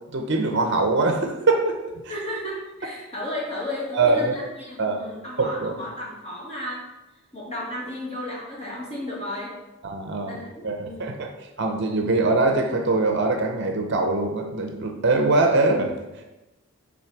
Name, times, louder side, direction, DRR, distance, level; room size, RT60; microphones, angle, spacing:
voice 1, 0.1-2.1 3.9-4.3 4.8-5.0 5.4-5.7 9.8-10.4 10.6-11.3 11.6-16.0, right 3 dB, 50° right, 4 dB, 0.6 m, -22 dB
voice 2, 2.1-6.9 7.3-9.5 10.2-10.5 10.8-11.2, left 1 dB, 30° left, -5 dB, 1.9 m, -33 dB
6.1 x 4.2 x 4.6 m, 1.0 s
head